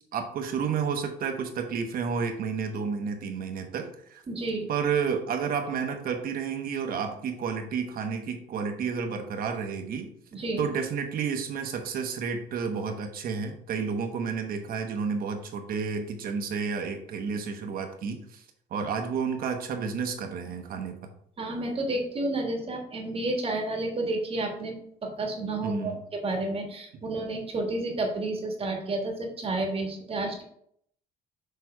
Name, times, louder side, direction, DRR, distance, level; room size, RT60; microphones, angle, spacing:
voice 1, 0.1-4.2 4.7-10.1 10.6-18.4 18.7-21.1 25.6-26.0, right 6 dB, 60° right, 5 dB, 1.2 m, -31 dB
voice 2, 4.3-4.7 10.3-10.7 21.4-24.8 25.0-30.4, right 2 dB, 35° right, 2 dB, 1.5 m, -31 dB
6.6 x 3.4 x 4.5 m, 0.68 s
cardioid pair, 110°, 17 cm